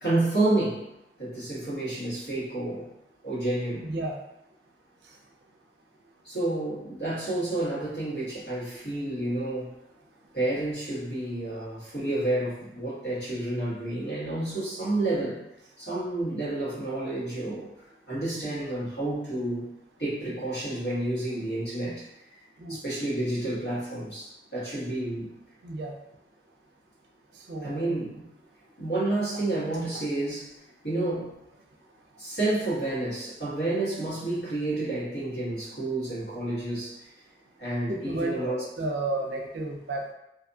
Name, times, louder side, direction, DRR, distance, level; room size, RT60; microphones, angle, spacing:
voice 1, 0.0-0.9 1.2-2.9 3.2-3.9 6.2-9.7 10.3-15.4 15.8-17.7 18.1-19.7 20.0-22.0 22.7-25.3 27.6-28.2 28.8-30.5 30.8-31.3 32.2-37.1 37.6-38.6, right 2 dB, 65° left, -9 dB, 1.3 m, -30 dB
voice 2, 3.8-4.2 22.6-22.8 25.6-25.9 27.5-27.9 37.9-40.1, right 2 dB, 80° right, 1 dB, 0.5 m, -32 dB
2.6 x 2.3 x 2.6 m, 0.87 s
head